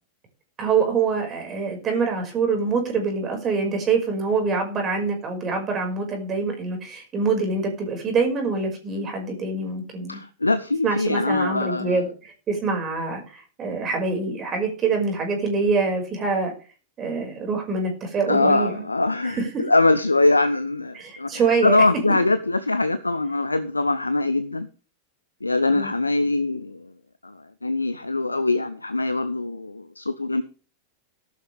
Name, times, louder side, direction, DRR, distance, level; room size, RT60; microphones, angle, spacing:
voice 1, 0.6-10.2 10.8-16.5 17.0-18.9 19.3-19.6 21.0-21.8 25.7-25.9, right 4 dB, 25° right, 3 dB, 5.5 m, -25 dB
voice 2, 10.1-12.0 18.3-21.3 21.6-24.7 25.4-26.9 27.2-30.4, left 2 dB, 80° left, 14 dB, 0.7 m, -22 dB
14.5 x 12.0 x 3.5 m, 0.35 s
figure-of-eight pair, 90°, 0 cm